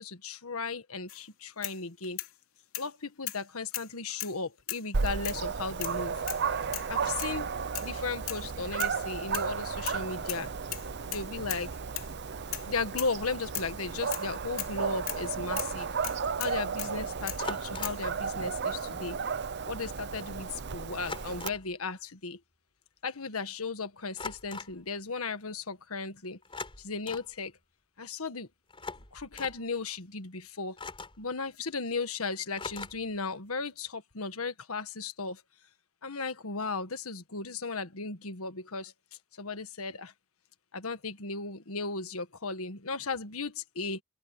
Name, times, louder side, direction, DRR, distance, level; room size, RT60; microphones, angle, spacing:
voice 1, 0.0-2.2 2.8-6.2 6.9-7.5 7.8-10.5 11.0-11.8 12.7-15.9 16.4-19.2 19.7-22.4 23.0-26.4 26.8-27.5 28.0-28.5 29.1-30.8 31.2-35.4 36.0-38.9 39.3-40.1 40.7-44.0, left 4 dB, 90° left, 1.6 m, -36 dB
sound 1, 1.1-1.2 1.6-2.3 2.7-2.9 3.3-3.4 3.7-4.4 4.7-4.9 5.2-5.4 5.8-6.0 6.3-6.5 6.7-6.9 7.2-7.4 7.7-7.9 8.3-8.4 8.8-9.0 9.3-10.0 10.3-10.5 10.7-11.7 12.0-12.1 12.5-12.7 13.0-13.2 13.5-13.7 14.1-14.3 14.6-14.8 15.1-15.2 15.6-15.7 16.0-16.9 17.3-17.4 17.8-18.0, left 15 dB, 75° left, 2.7 m, -37 dB
Dog, 4.9-21.5, right 5 dB, 50° right, 0.7 m, -34 dB
sound 2, 17.4-18.1 19.5-19.6 19.8-20.1 21.0-21.8 24.2-24.8 26.4-27.3 28.7-29.6 30.8-31.3 32.6-33.2, left 4 dB, 25° left, 4.3 m, -41 dB
open air
head